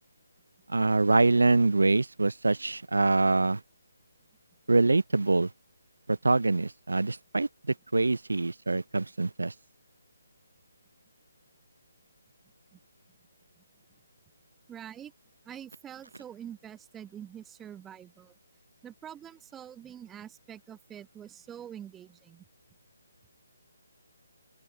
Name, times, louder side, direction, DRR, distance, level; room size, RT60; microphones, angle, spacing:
voice 1, 0.7-3.6 4.7-5.5 6.1-7.5 7.9-9.5, right 3 dB, 70° right, 0.6 m, -24 dB
voice 2, 14.7-15.1 15.4-18.3 18.8-22.4, right 9 dB, 10° right, 1.2 m, -45 dB
open air
figure-of-eight pair, 145°, 0 cm